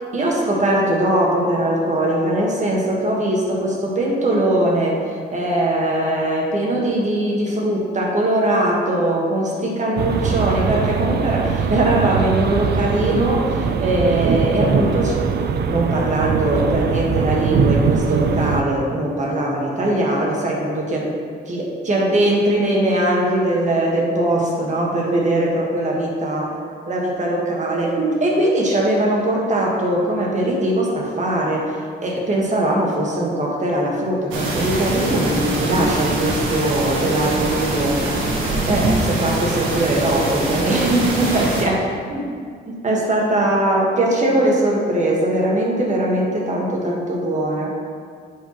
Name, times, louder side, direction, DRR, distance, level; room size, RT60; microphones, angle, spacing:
voice 1, 0.1-5.0 5.3-21.1 21.5-26.5 26.9-31.8 32.0-42.2 42.7-47.7, right 1 dB, 35° right, -2 dB, 1.5 m, -21 dB
sound 1, 10.0-18.6, right 6 dB, 55° right, 0.5 m, -21 dB
sound 2, 34.3-41.6, right 2 dB, 85° right, 1.3 m, -23 dB
9.9 x 4.9 x 3.1 m, 2.1 s
cardioid pair, 90°, 20 cm